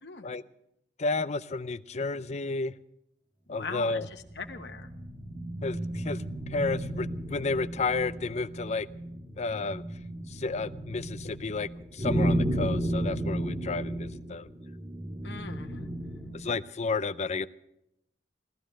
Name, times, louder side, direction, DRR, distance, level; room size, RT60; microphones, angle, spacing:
voice 1, 0.0-0.4 3.5-4.0 4.4-4.9 15.2-16.3, left 4 dB, 70° left, 5 dB, 1.2 m, -41 dB
voice 2, 1.0-2.8 3.5-4.1 5.6-6.2 6.5-8.9 9.4-9.8 10.3-14.5 16.3-17.5, left 3 dB, 40° left, 15 dB, 0.5 m, -31 dB
sound 1, 3.9-16.6, right 1 dB, 25° right, 2.0 m, -33 dB
17.5 x 12.0 x 6.3 m, 0.82 s
head